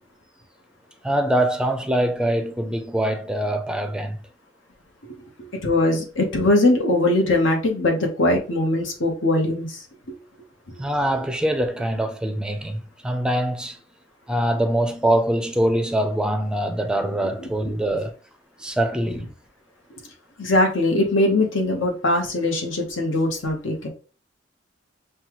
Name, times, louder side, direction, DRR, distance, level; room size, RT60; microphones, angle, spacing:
voice 1, 1.0-4.2 10.8-13.8 14.3-18.1 18.6-19.3, right 1 dB, 5° right, 0.5 m, -23 dB
voice 2, 5.0-9.8 20.4-23.9, left 2 dB, 75° left, 1.1 m, -21 dB
5.6 x 2.3 x 3.0 m
head